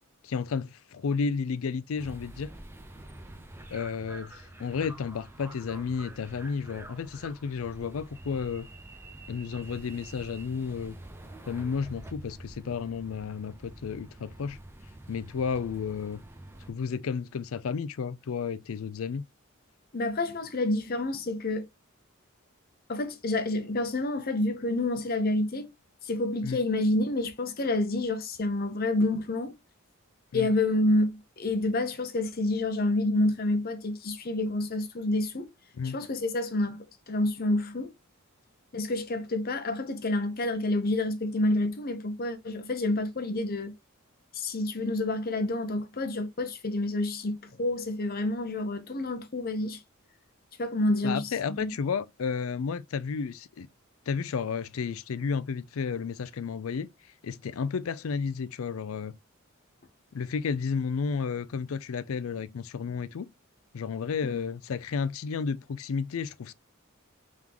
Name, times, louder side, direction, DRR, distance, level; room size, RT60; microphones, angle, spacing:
voice 1, 0.2-2.5 3.7-8.7 9.3-11.0 11.5-14.6 15.1-16.2 16.7-19.2 26.4-26.6 30.3-30.5 35.8-36.0 51.0-53.7 54.1-56.9 57.2-59.2 60.1-63.3 63.7-66.5, left 5 dB, 75° left, 0.4 m, -32 dB
sound 1, 2.0-16.7, right 1 dB, 10° right, 0.6 m, -47 dB
voice 2, 19.9-21.7 22.9-25.7 26.0-29.5 30.3-35.5 35.8-37.9 38.7-43.7 44.3-49.8 50.6-51.7 64.2-64.4, left 2 dB, 45° left, 0.8 m, -28 dB
3.6 x 3.6 x 2.9 m
head